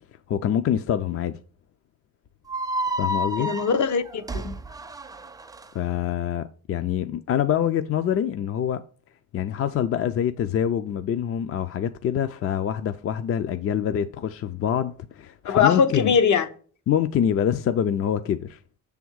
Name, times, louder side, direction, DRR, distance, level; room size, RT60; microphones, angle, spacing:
voice 1, 0.3-1.3 3.0-3.5 5.7-8.8 9.3-16.1 16.9-18.6, left 9 dB, 50° left, 0.4 m, -25 dB
sound 1, 2.5-5.7, right 1 dB, 10° right, 0.4 m, -30 dB
voice 2, 3.4-4.5 15.4-16.5, left 6 dB, 70° left, 0.9 m, -21 dB
7.0 x 3.5 x 6.2 m
cardioid pair, 145°, 30 cm